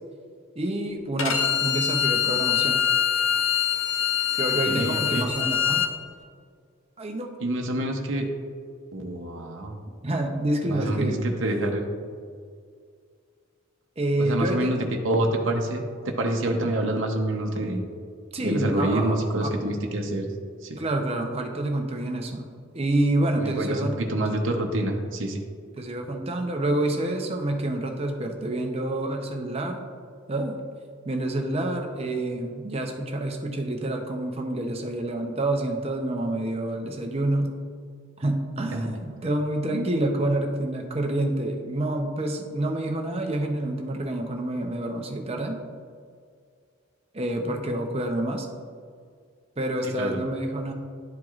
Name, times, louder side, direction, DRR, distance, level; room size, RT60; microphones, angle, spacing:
voice 1, 0.6-2.8 4.4-5.8 7.0-7.3 10.0-11.2 14.0-14.7 18.3-19.5 20.8-22.4 22.7-23.9 25.8-29.8 30.3-30.6 31.1-37.5 38.2-45.6 47.1-48.5 49.6-50.7, right 1 dB, 30° right, 3 dB, 0.6 m, -28 dB
Bowed string instrument, 1.2-5.9, left 8 dB, 90° left, 0.8 m, -24 dB
voice 2, 4.7-5.3 7.4-8.3 8.9-9.8 10.7-11.8 14.2-17.8 18.4-20.3 20.6-20.8 23.4-23.8 24.1-25.5 38.7-39.3 39.7-39.9 50.0-50.1, right 1 dB, 70° right, 1 dB, 0.7 m, -27 dB
11.5 x 4.6 x 2.4 m, 2.1 s
head